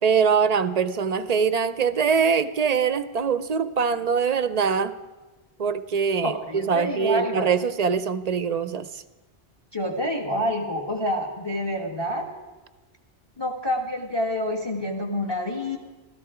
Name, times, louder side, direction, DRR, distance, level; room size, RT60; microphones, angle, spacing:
voice 1, 0.0-4.9 5.6-9.0, right 6 dB, 50° right, 13 dB, 0.5 m, -23 dB
voice 2, 6.2-7.5 9.7-12.3 13.4-15.8, equal, 25° left, 2 dB, 1.4 m, -27 dB
15.0 x 13.5 x 4.9 m, 1.2 s
omnidirectional pair, 1.1 m